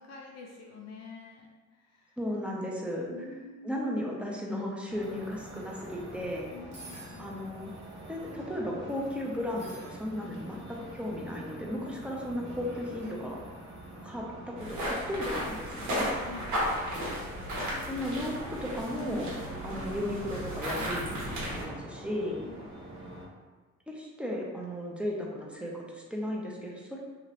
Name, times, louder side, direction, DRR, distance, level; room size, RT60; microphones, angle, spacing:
voice 1, 0.0-2.2 3.0-3.8 6.5-7.4 16.1-16.5 22.4-22.7, left 4 dB, 60° left, -1 dB, 0.5 m, -47 dB
voice 2, 2.2-3.1 3.6-6.5 7.2-7.7 8.1-13.4 14.0-16.1 17.9-19.4 19.6-22.4 23.9-27.0, left 1 dB, 5° right, -3 dB, 0.6 m, -35 dB
sound 1, 4.9-23.2, right 1 dB, 35° right, 1.1 m, -45 dB
sound 2, 6.7-7.3 8.2-8.5 9.5-10.0 11.1-11.5 13.0-13.2, right 2 dB, 60° right, 0.9 m, -50 dB
sound 3, 14.6-21.6, equal, 85° right, 1.1 m, -34 dB
2.9 x 2.4 x 3.0 m, 1.3 s
cardioid pair, 90°, 30 cm